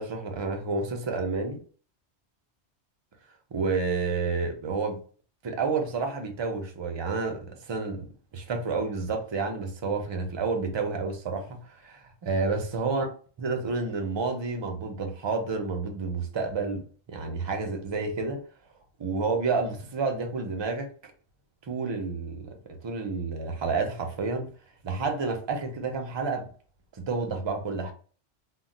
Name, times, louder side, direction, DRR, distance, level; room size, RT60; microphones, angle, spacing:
voice 1, 0.0-1.6 3.5-5.0 5.4-8.0 8.3-13.1 13.4-16.8 17.1-18.4 19.0-20.9 21.7-22.5 22.8-24.5 24.8-26.5 27.1-27.9, right 4 dB, 40° right, 0.3 m, -30 dB
2.2 x 2.1 x 3.9 m
omnidirectional pair, 1.2 m